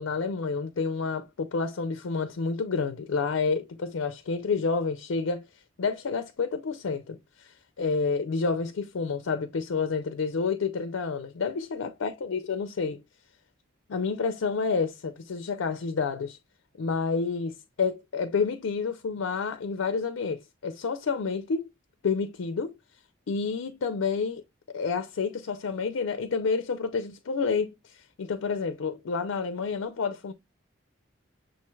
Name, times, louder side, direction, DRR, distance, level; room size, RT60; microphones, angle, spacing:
voice 1, 0.0-5.4 5.8-13.0 13.9-16.4 16.8-21.7 22.0-22.8 23.3-24.4 24.7-30.3, left 5 dB, 85° left, 0.5 m, -29 dB
6.2 x 3.1 x 2.2 m
head